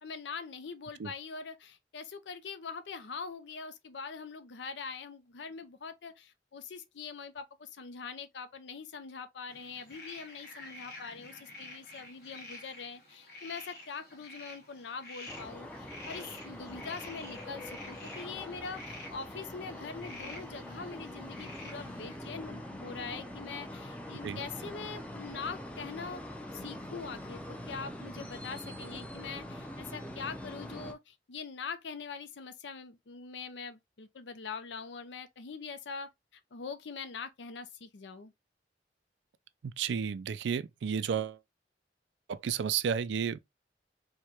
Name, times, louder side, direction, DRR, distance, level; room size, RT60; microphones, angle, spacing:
voice 1, 0.0-26.2 26.5-38.3, left 5 dB, 90° left, 0.6 m, -43 dB
sound 1, 9.5-22.2, left 2 dB, 60° left, 1.2 m, -49 dB
sound 2, 15.3-30.9, left 1 dB, 5° left, 0.5 m, -44 dB
voice 2, 39.6-41.4 42.3-43.4, right 7 dB, 85° right, 0.4 m, -32 dB
4.7 x 2.2 x 2.8 m
head